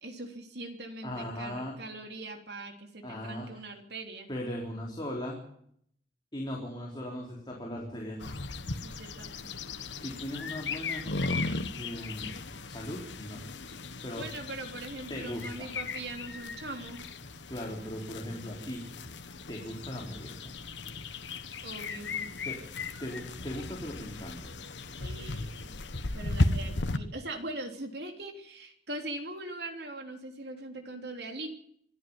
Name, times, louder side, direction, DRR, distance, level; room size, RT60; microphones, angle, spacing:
voice 1, 0.0-4.3 8.8-9.5 14.1-17.0 21.6-22.3 25.0-25.5 26.1-31.5, right 2 dB, 65° right, 5 dB, 3.4 m, -41 dB
voice 2, 1.0-1.7 3.0-3.6 4.3-5.4 6.3-8.2 10.0-11.0 11.8-12.3 12.7-13.4 14.0-14.2 15.1-15.7 17.5-18.8 19.5-20.5 22.5-24.5, equal, 25° left, -1 dB, 3.9 m, -38 dB
sound 1, 8.2-27.0, left 2 dB, 90° left, 1.4 m, -36 dB
26.0 x 11.0 x 9.8 m, 0.68 s
head